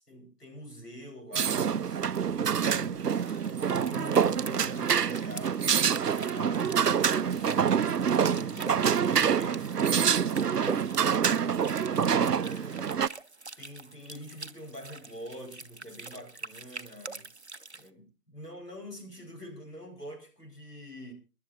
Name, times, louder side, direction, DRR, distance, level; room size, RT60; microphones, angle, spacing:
voice 1, 0.0-3.3 3.7-11.5 11.8-13.0 13.6-17.3 17.7-21.1, equal, 85° left, 4 dB, 4.7 m, -46 dB
sound 1, 1.3-13.1, right 7 dB, 85° right, 0.6 m, -26 dB
sound 2, 1.8-7.8, left 2 dB, 40° left, 2.8 m, -53 dB
sound 3, 3.2-17.9, right 3 dB, 45° right, 0.6 m, -45 dB
27.5 x 11.0 x 2.6 m, 0.32 s
figure-of-eight pair, 165°, 46 cm